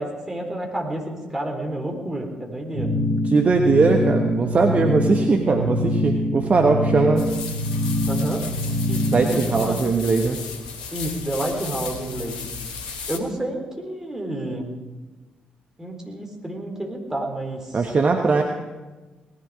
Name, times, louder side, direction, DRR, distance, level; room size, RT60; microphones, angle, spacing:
voice 1, 0.0-2.9 8.1-8.4 8.9-9.8 10.9-12.4 13.1-14.7 15.8-17.8, right 1 dB, 10° right, 1 dB, 3.9 m, -30 dB
sound 1, 2.7-9.5, left 1 dB, 60° right, 6.9 m, -24 dB
voice 2, 3.2-7.3 9.1-10.4 17.7-18.4, right 4 dB, 35° right, 3 dB, 1.3 m, -20 dB
sound 2, 7.2-13.2, left 5 dB, 75° left, 1.1 m, -35 dB
18.5 x 14.5 x 4.9 m, 1.2 s
figure-of-eight pair, 40°, 4 cm